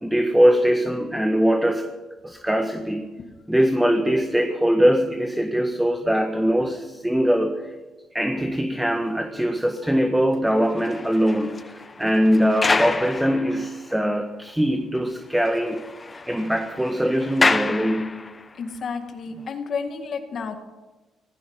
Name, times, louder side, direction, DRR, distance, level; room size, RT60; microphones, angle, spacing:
voice 1, 0.0-1.9 2.2-3.2 3.5-7.7 8.1-15.8 16.3-18.2, equal, 5° right, 6 dB, 1.4 m, -22 dB
sound 1, 10.5-14.2 14.5-14.6 14.9-15.0 15.3-18.6 19.3-19.5, left 3 dB, 25° left, 0.8 m, -28 dB
voice 2, 18.6-20.6, left 5 dB, 55° left, 6 dB, 2.3 m, -31 dB
16.5 x 15.5 x 5.7 m, 1.2 s
cardioid pair, 90°, 0 cm